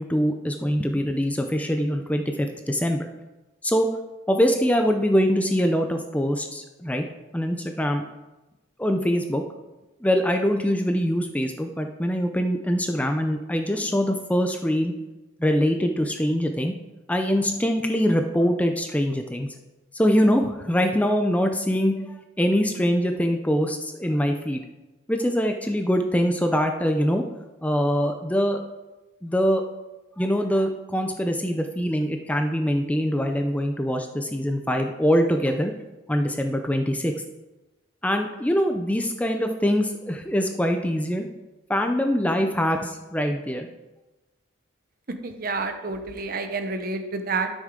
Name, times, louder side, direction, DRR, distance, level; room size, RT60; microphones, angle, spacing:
voice 1, 0.0-3.1 3.6-3.9 4.3-7.0 7.3-8.0 8.8-9.4 10.0-14.9 15.4-16.7 17.1-19.5 19.9-22.1 22.4-24.6 25.1-27.2 27.6-28.6 29.2-29.6 30.2-35.7 36.1-37.1 38.0-41.3 41.7-43.7, equal, 5° left, 5 dB, 0.5 m, -23 dB
voice 2, 45.2-47.5, right 3 dB, 45° right, 7 dB, 0.8 m, -29 dB
12.0 x 6.3 x 3.8 m, 1.1 s
head